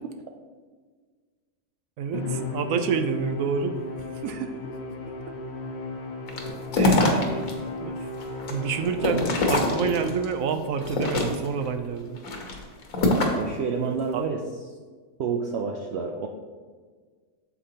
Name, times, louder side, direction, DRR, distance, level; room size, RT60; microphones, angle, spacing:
voice 1, 2.0-3.8 4.2-4.6 5.3-5.4 6.8-7.5 7.9-8.1 8.5-12.2 13.8-14.2, right 5 dB, 80° right, 8 dB, 1.0 m, -28 dB
Musical instrument, 2.1-10.7, left 2 dB, 55° left, 0.9 m, -35 dB
sound 1, 6.3-7.5 8.0-10.2 10.8-11.6 12.2-13.5, left 2 dB, 80° left, 1.5 m, -24 dB
voice 2, 13.3-14.4 15.2-16.3, right 5 dB, 65° right, 2 dB, 0.7 m, -29 dB
8.3 x 7.2 x 2.9 m, 1.5 s
omnidirectional pair, 1.4 m